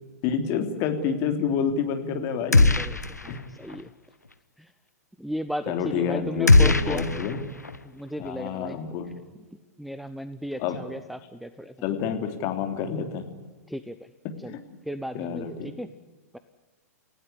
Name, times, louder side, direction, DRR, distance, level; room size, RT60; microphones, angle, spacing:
voice 1, 0.2-2.9 3.3-3.4 5.7-7.4 8.2-9.2 10.6-10.8 11.8-13.2 14.5-14.6 15.1-15.7, left 7 dB, 35° left, 5 dB, 3.2 m, -28 dB
voice 2, 2.4-3.0 3.2-3.9 4.6-4.7 5.2-7.1 7.9-8.8 9.8-11.7 13.7-14.0 14.4-14.6 14.9-15.9 16.3-16.4, equal, ahead, 9 dB, 0.8 m, -35 dB
sound 1, 2.5-3.4 3.7-3.8 6.5-7.8, left 3 dB, 80° left, 1.1 m, -20 dB
28.5 x 17.0 x 9.9 m, 1.2 s
figure-of-eight pair, 105°, 9 cm